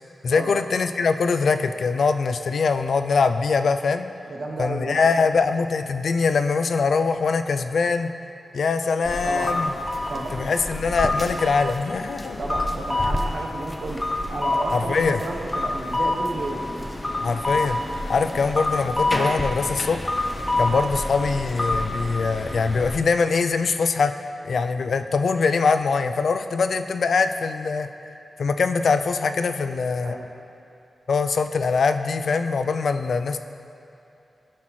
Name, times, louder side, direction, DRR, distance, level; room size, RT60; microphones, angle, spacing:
voice 1, 0.2-4.1 4.6-8.1 8.5-9.7 10.3-12.4 14.7-15.2 17.2-17.8 18.1-20.1 20.6-24.2 24.4-27.9 28.4-30.2 31.1-33.4, left 4 dB, 75° left, 9 dB, 0.3 m, -23 dB
voice 2, 4.3-5.0 9.2-9.6 10.1-10.4 12.4-16.7 30.0-30.3, right 2 dB, 65° right, -1 dB, 1.0 m, -32 dB
sound 1, 9.0-23.0, left 1 dB, 20° left, 0.6 m, -27 dB
11.0 x 5.8 x 3.1 m, 2.8 s
wide cardioid pair, 100°, 0 cm